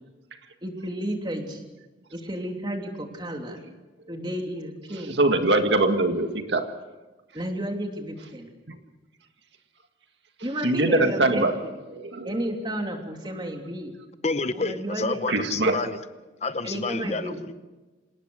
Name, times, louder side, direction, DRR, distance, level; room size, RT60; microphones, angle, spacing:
voice 1, 0.6-1.6 2.1-3.6 4.1-5.2 7.3-8.5 10.4-11.7 12.2-13.9 14.5-15.2 16.6-17.4, right 1 dB, 25° right, 3 dB, 3.1 m, -32 dB
voice 2, 5.2-6.7 10.6-11.5 11.9-12.3 15.3-15.8, right 2 dB, 70° right, 6 dB, 1.8 m, -22 dB
voice 3, 14.2-16.0 16.4-17.5, left 3 dB, 35° left, 11 dB, 0.8 m, -29 dB
27.5 x 18.5 x 6.4 m, 1.2 s
head